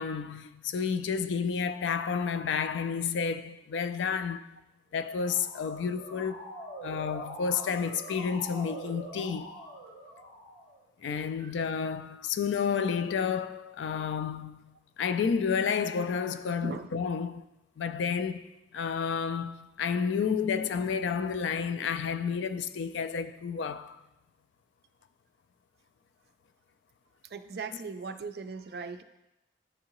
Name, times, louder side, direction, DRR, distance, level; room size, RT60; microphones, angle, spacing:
voice 1, 0.0-4.5 4.9-6.5 6.8-9.6 11.0-17.4 17.8-24.0 27.7-27.8, left 6 dB, 90° left, 0.3 m, -31 dB
Motor vehicle (road) / Siren, 4.9-10.8, right 1 dB, 65° left, 1.8 m, -44 dB
voice 2, 27.3-29.0, right 4 dB, 60° right, 0.4 m, -38 dB
10.5 x 3.7 x 3.0 m
head